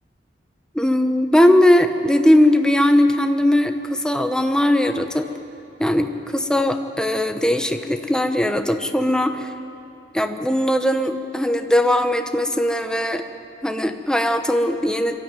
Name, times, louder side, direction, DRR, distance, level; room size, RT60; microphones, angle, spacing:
voice 1, 0.7-5.3 5.8-9.5 10.1-13.2 13.6-15.1, left 1 dB, 5° left, 6 dB, 1.0 m, -19 dB
23.5 x 13.0 x 9.1 m, 2.7 s
head